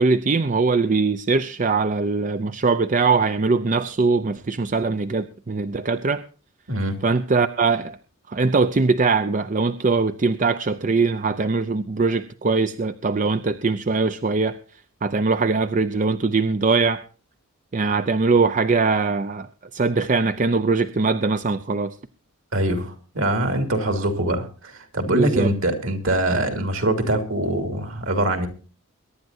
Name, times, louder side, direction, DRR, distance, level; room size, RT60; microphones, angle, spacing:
voice 1, 0.0-6.2 7.0-8.0 8.3-14.6 15.0-17.0 17.7-22.0 25.1-25.5, right 4 dB, 35° right, 11 dB, 0.5 m, -21 dB
voice 2, 6.7-7.0 22.5-28.5, right 1 dB, 65° right, 7 dB, 2.7 m, -23 dB
22.5 x 11.0 x 2.7 m, 0.38 s
head